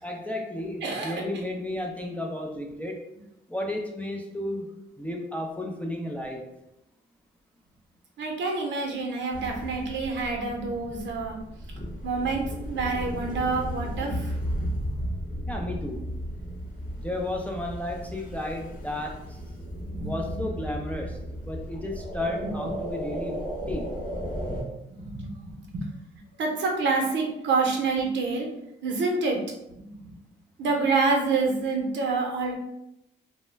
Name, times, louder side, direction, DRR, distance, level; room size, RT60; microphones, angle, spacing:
voice 1, 0.0-3.0 3.5-4.7 5.0-6.4 15.5-16.1 17.0-19.4 20.0-21.2 21.4-23.9, left 1 dB, 5° left, 0 dB, 0.3 m, -33 dB
voice 2, 0.8-1.2 8.2-11.4 12.0-14.3 19.8-20.4 24.9-25.8 26.4-28.5 28.8-29.4 29.9-30.1 30.6-32.5, right 4 dB, 65° right, 1 dB, 0.7 m, -27 dB
sound 1, 9.3-24.6, equal, 40° left, 0.8 m, -35 dB
2.2 x 2.1 x 3.2 m, 0.85 s
cardioid pair, 90°, 20 cm